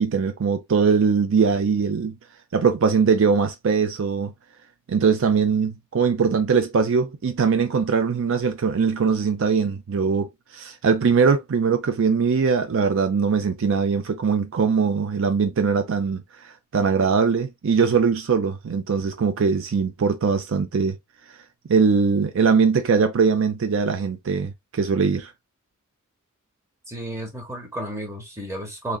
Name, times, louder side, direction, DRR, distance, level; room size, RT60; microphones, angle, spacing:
voice 1, 0.0-2.2 2.5-4.3 4.9-16.2 16.7-21.0 21.7-25.3, right 5 dB, 60° right, 0.4 m, -21 dB
voice 2, 26.9-29.0, right 1 dB, 15° right, 1.2 m, -32 dB
3.7 x 3.2 x 2.2 m
head